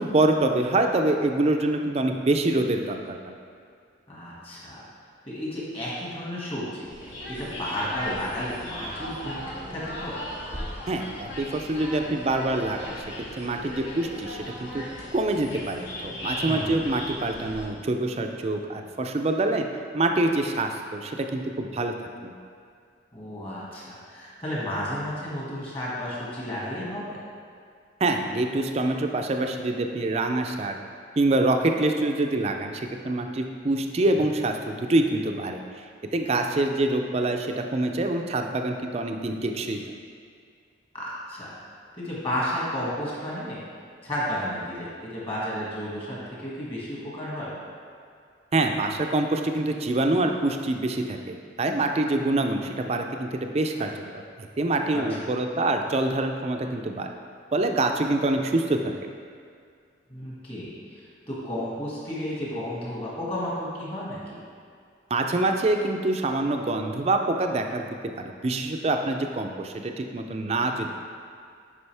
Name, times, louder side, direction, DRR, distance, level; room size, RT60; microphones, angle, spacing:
voice 1, 0.0-3.2 10.9-12.9 13.4-14.8 15.1-19.7 19.9-21.9 22.2-22.4 28.0-30.8 31.2-35.6 36.1-39.8 48.5-57.1 57.5-58.9 65.1-70.9, right 2 dB, 35° right, 4 dB, 0.4 m, -25 dB
voice 2, 4.1-4.8 5.2-6.9 7.3-10.2 16.5-16.8 23.1-27.2 34.1-34.3 40.9-41.5 41.9-43.6 44.0-47.5 53.8-53.9 54.9-55.2 60.1-64.4, equal, 30° left, -7 dB, 1.9 m, -32 dB
sound 1, 6.8-17.6, equal, 70° left, 1.8 m, -37 dB
9.6 x 5.0 x 3.4 m, 2.2 s
head